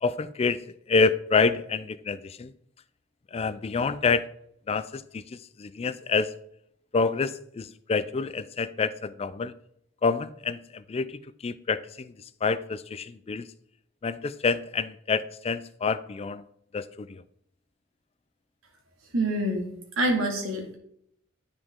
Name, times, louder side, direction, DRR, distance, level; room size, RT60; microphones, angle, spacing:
voice 1, 0.0-2.5 3.3-4.3 4.7-6.3 6.9-9.5 10.0-12.1 12.4-13.5 14.0-16.4 16.7-17.2, left 4 dB, 30° left, 0.4 m, -27 dB
voice 2, 19.1-19.7 20.0-20.8, right 1 dB, 80° right, 2.0 m, -26 dB
10.0 x 5.0 x 3.6 m
head